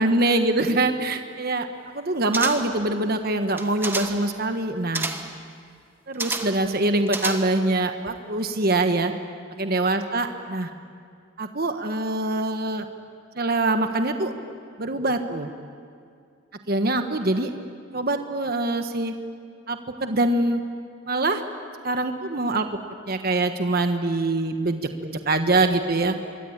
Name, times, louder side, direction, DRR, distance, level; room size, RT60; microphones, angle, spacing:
voice 1, 0.0-1.7 1.9-5.1 6.1-9.1 9.6-10.7 11.4-12.9 13.3-14.3 14.8-15.5 16.7-17.5 17.9-19.1 19.7-20.6 21.1-21.4 21.8-22.7 23.1-26.1, right 2 dB, 45° right, 6 dB, 1.3 m, -24 dB
sound 1, 2.3-2.8 3.5-4.3 4.9-5.4 6.2-6.7 7.1-7.7 8.1-8.2, right 3 dB, 10° right, 1.3 m, -30 dB
26.5 x 22.5 x 8.8 m, 2.3 s
head